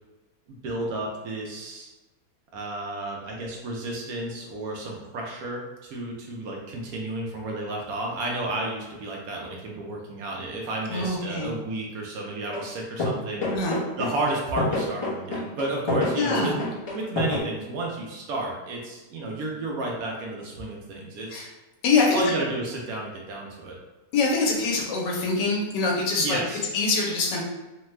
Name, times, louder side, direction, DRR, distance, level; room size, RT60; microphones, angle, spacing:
voice 1, 0.6-1.9 2.5-13.5 14.0-16.5 16.9-21.5 22.1-23.8 26.2-26.7, right 2 dB, 70° right, -1 dB, 1.0 m, -32 dB
voice 2, 10.9-11.5 13.5-13.8 16.1-16.6 21.3-21.5 21.8-22.2 24.1-26.4 26.7-27.4, left 3 dB, 85° left, -1 dB, 1.3 m, -24 dB
sound 1, 12.5-12.7 13.0-17.4, left 2 dB, 30° left, 0.6 m, -27 dB
3.2 x 2.2 x 3.0 m, 1.1 s
omnidirectional pair, 1.8 m